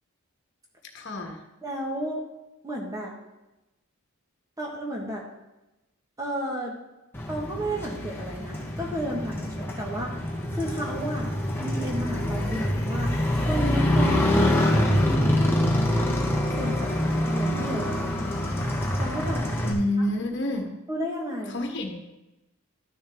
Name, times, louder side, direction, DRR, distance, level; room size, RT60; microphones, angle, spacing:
voice 1, 0.9-1.4 19.6-20.7 21.5-22.0, left 1 dB, 55° left, 3 dB, 1.3 m, -28 dB
voice 2, 1.6-2.2 2.6-3.1 4.6-5.3 6.2-6.7 7.3-10.2 10.5-11.3 11.6-13.1 13.5-15.4 15.9-16.1 16.6-16.9 17.2-18.4 19.0-19.5 20.9-21.6, equal, 15° right, -2 dB, 1.3 m, -32 dB
Motorcycle, 7.1-19.7, left 1 dB, 10° left, 1.1 m, -25 dB
12.5 x 6.5 x 3.5 m, 0.98 s
head